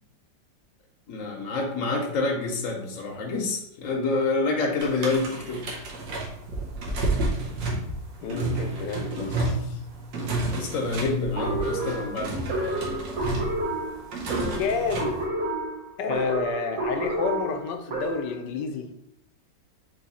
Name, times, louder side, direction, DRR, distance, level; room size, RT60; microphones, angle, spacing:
voice 1, 1.1-5.6 10.5-12.3, left 3 dB, 60° left, 0 dB, 0.9 m, -27 dB
sound 1, 4.8-15.2, right 2 dB, 85° right, 1.6 m, -31 dB
voice 2, 8.2-9.8 14.6-15.2 16.0-18.9, left 5 dB, 80° left, 6 dB, 1.2 m, -30 dB
sound 2, 11.4-18.4, right 2 dB, 55° right, 1.5 m, -30 dB
3.8 x 3.0 x 4.1 m, 0.74 s
omnidirectional pair, 1.9 m